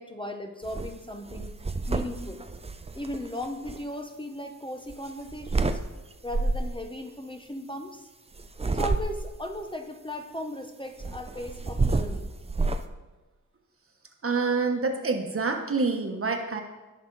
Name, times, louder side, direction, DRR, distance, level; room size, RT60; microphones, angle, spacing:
voice 1, 0.0-1.5 1.9-2.4 2.9-5.8 6.2-8.1 8.7-12.3, left 1 dB, 15° left, 4 dB, 0.8 m, -37 dB
sound 1, 0.6-0.9 1.3-3.8 4.9-5.8 6.3-6.8 8.4-9.4 11.0-12.8, right 3 dB, 20° right, 0.5 m, -29 dB
voice 2, 14.2-16.6, right 4 dB, 45° right, 4 dB, 1.3 m, -27 dB
18.0 x 6.1 x 4.0 m, 1.2 s
wide cardioid pair, 120°, 30 cm